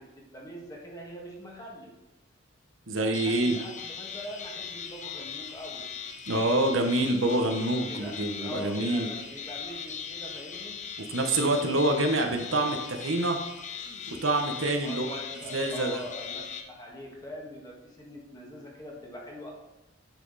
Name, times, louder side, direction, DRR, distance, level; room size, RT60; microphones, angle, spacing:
voice 1, 0.0-1.9 2.9-5.9 7.9-10.8 14.8-16.4 16.7-19.5, equal, 20° left, -2 dB, 1.8 m, -43 dB
voice 2, 2.9-3.6 6.3-9.1 11.0-13.4 14.1-15.1 15.5-16.0, right 2 dB, 80° right, 4 dB, 1.1 m, -26 dB
sound 1, 3.1-16.6, left 7 dB, 40° left, 0.9 m, -39 dB
9.1 x 5.9 x 4.1 m, 0.96 s
head